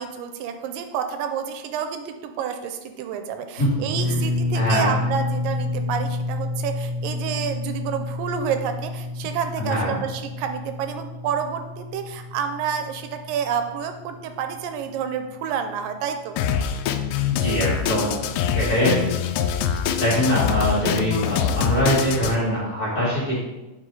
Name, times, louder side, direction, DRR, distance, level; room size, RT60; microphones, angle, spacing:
voice 1, 0.0-16.4, right 7 dB, 85° right, 7 dB, 2.3 m, -29 dB
voice 2, 3.6-4.2 4.5-5.0 9.6-10.0 17.3-18.1 18.5-19.1 20.0-23.4, equal, 30° left, -7 dB, 1.9 m, -23 dB
sound 1, 3.9-16.1 16.4-16.6 18.3-18.4, left 2 dB, 65° left, 2.3 m, -30 dB
Drum kit, 16.4-22.4, left 7 dB, 80° left, 2.0 m, -24 dB
8.3 x 4.8 x 3.8 m, 1.1 s
omnidirectional pair, 3.9 m